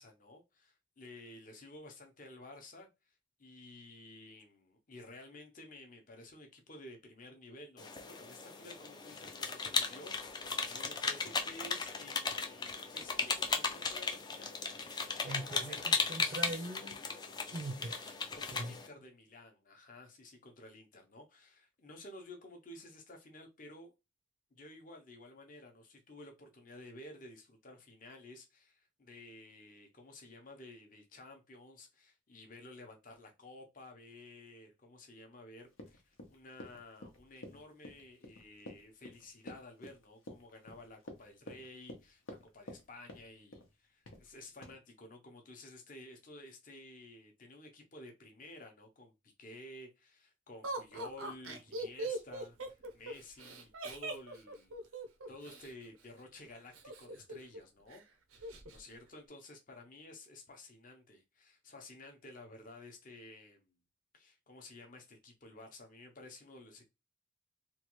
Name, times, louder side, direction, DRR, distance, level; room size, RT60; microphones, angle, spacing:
voice 1, 0.0-15.0 15.3-15.9 18.3-23.9 24.5-42.2 42.5-54.8 55.3-58.0 58.4-63.7 64.1-66.9, left 1 dB, 40° left, 0.7 m, -53 dB
sound 1, 7.8-18.9, left 4 dB, 20° left, 0.3 m, -36 dB
voice 2, 15.2-17.0 17.5-18.2 18.5-18.7, right 2 dB, 40° right, 0.5 m, -41 dB
Run, 35.7-42.8 43.1-43.7 44.1-44.3 44.6-44.7, left 1 dB, 80° left, 0.8 m, -50 dB
Laughter, 50.6-55.7 56.7-57.6 57.9-58.0 58.3-58.8, right 2 dB, 90° right, 0.6 m, -41 dB
3.1 x 2.3 x 3.0 m
head